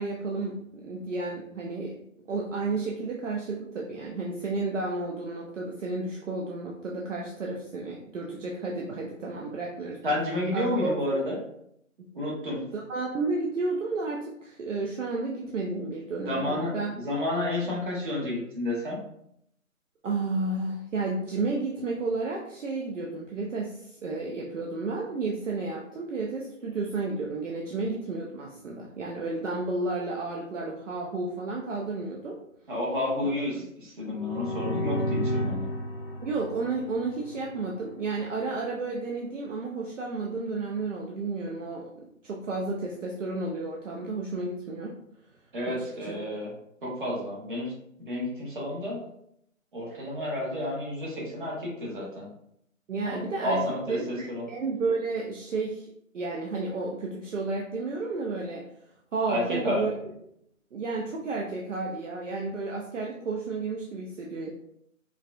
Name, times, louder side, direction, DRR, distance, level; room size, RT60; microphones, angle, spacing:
voice 1, 0.0-1.9 2.3-10.0 10.5-11.2 12.7-17.0 20.0-32.4 33.2-33.6 36.2-41.8 42.2-44.9 45.7-46.1 52.9-53.6 53.9-55.9 56.1-58.6 59.1-60.0 60.7-64.5, right 3 dB, 60° right, -2 dB, 0.6 m, -32 dB
voice 2, 10.0-11.3 12.1-12.6 16.3-19.0 32.7-35.7 45.5-46.5 46.8-47.7 48.0-49.1 49.7-52.3 53.0-54.4 59.3-59.9, left 1 dB, 35° right, -4 dB, 1.1 m, -30 dB
sound 1, 34.1-37.8, equal, 45° left, 0.5 m, -32 dB
4.7 x 2.2 x 2.4 m, 0.75 s
hypercardioid pair, 165°, 42 cm